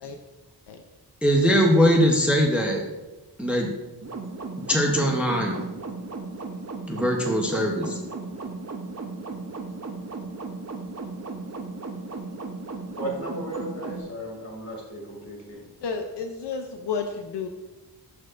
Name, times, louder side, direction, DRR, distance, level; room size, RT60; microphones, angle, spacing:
voice 1, 1.2-2.8 3.4-3.7 4.7-5.6 6.9-8.0, equal, 5° right, 1 dB, 0.7 m, -21 dB
sound 1, 4.0-14.0, right 3 dB, 40° right, 0.7 m, -36 dB
voice 2, 13.0-15.6, right 1 dB, 40° left, -2 dB, 2.4 m, -35 dB
voice 3, 15.8-17.5, left 5 dB, 80° left, 5 dB, 0.6 m, -31 dB
12.5 x 4.5 x 2.5 m, 1.1 s
wide cardioid pair, 115°, 41 cm